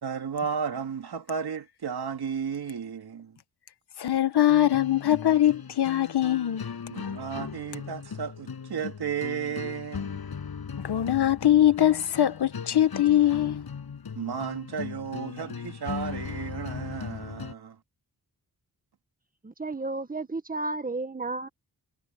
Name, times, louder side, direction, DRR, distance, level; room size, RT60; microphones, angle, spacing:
voice 1, 0.0-3.4 4.3-4.4 6.9-10.3 14.1-17.8, right 7 dB, 75° right, 2.9 m, -34 dB
voice 2, 4.0-6.7 10.8-13.6, left 12 dB, 85° left, 1.4 m, -22 dB
sound 1, 4.5-17.5, left 6 dB, 70° left, 7.3 m, -38 dB
voice 3, 19.4-21.5, right 3 dB, 20° right, 1.6 m, -32 dB
wide cardioid pair, 95°, 38 cm